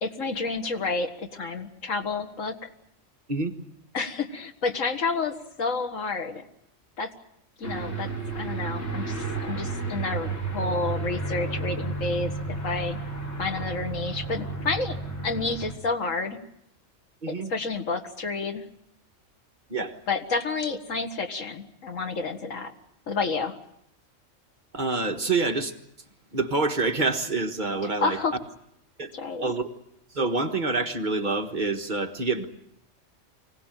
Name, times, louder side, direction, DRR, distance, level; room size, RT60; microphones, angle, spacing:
voice 1, 0.0-2.7 3.9-6.4 7.0-7.1 7.6-13.0 13.4-15.0 15.2-16.4 17.3-18.7 20.1-22.7 23.1-23.6 27.8-28.4 29.1-29.4, left 4 dB, 90° left, 7 dB, 2.1 m, -30 dB
Aircraft, 7.6-15.7, right 3 dB, 75° left, 5.5 m, -32 dB
voice 2, 17.2-17.5 19.7-19.9 24.7-25.7 26.3-28.2 29.0-29.1 29.4-29.7 30.1-32.4, right 3 dB, 40° right, 5 dB, 1.6 m, -26 dB
25.0 x 18.0 x 9.1 m, 0.77 s
omnidirectional pair, 1.3 m